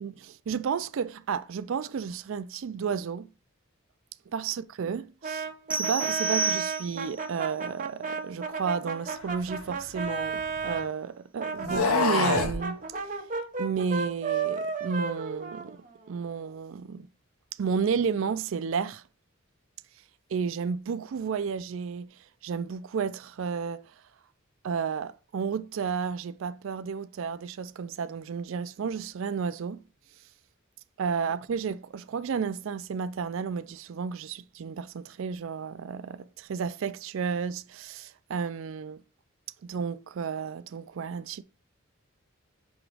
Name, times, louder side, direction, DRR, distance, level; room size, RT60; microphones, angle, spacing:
voice 1, 0.0-3.3 4.3-12.8 13.6-15.8 16.1-17.1 17.6-19.0 20.3-22.2 22.4-23.9 24.6-29.8 31.0-39.0 39.6-41.4, right 6 dB, 65° right, 0.4 m, -32 dB
Brass instrument, 5.2-10.9 11.4-16.2, right 5 dB, 35° right, 0.9 m, -33 dB
sound 1, 5.7-7.2, right 3 dB, 5° right, 0.4 m, -30 dB
sound 2, 9.4-10.8 11.6-12.6, left 4 dB, 85° left, 0.9 m, -28 dB
7.3 x 3.0 x 4.8 m
head